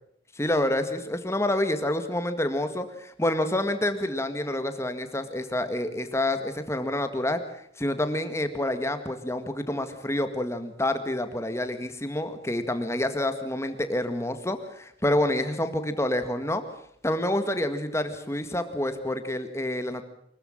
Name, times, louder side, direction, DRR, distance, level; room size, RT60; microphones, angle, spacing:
voice 1, 0.4-7.4 7.8-16.6 17.0-20.0, left 1 dB, 15° left, 9 dB, 1.9 m, -28 dB
24.5 x 14.5 x 8.8 m, 0.73 s
head